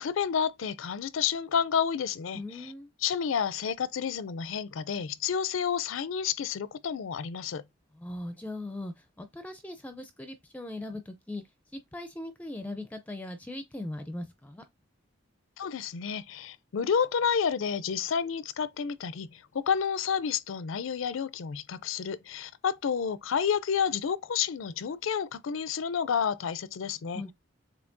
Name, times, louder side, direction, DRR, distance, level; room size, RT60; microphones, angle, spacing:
voice 1, 0.0-2.7 3.0-7.6 15.6-27.2, left 7 dB, 70° left, 0.4 m, -30 dB
voice 2, 2.3-2.9 7.9-11.4 11.7-14.6 27.0-27.3, left 1 dB, 10° left, 0.4 m, -39 dB
7.0 x 2.7 x 2.6 m
head